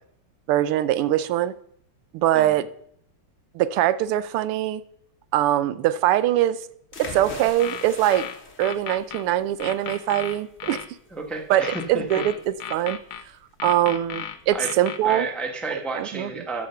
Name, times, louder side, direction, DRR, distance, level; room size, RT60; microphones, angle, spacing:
voice 1, 0.5-1.5 2.1-2.7 3.5-4.8 5.3-6.6 7.0-8.3 8.6-10.8 11.5-13.0 13.6-15.3 15.7-16.3, right 12 dB, 85° right, 14 dB, 1.5 m, -22 dB
sound 1, 6.9-14.6, left 4 dB, 35° left, 1.3 m, -43 dB
sound 2, 7.5-9.2 9.6-10.9 11.6-13.2 13.6-15.2, left 9 dB, 65° left, 1.4 m, -34 dB
voice 2, 11.1-12.2 14.5-14.7 15.0-16.7, right 3 dB, ahead, 3 dB, 0.8 m, -31 dB
13.0 x 5.2 x 5.7 m, 0.68 s
omnidirectional pair, 2.4 m